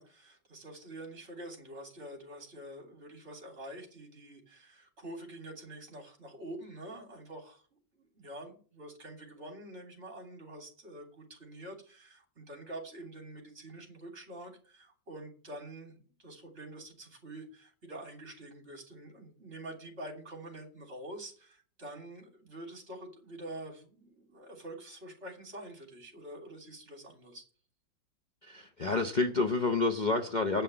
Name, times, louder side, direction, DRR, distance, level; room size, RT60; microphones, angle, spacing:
voice 1, 0.0-7.6 7.9-27.4, right 1 dB, 35° right, 3.1 m, -46 dB
voice 2, 28.4-30.6, left 3 dB, 75° left, 0.4 m, -29 dB
9.0 x 5.6 x 7.5 m
omnidirectional pair, 2.0 m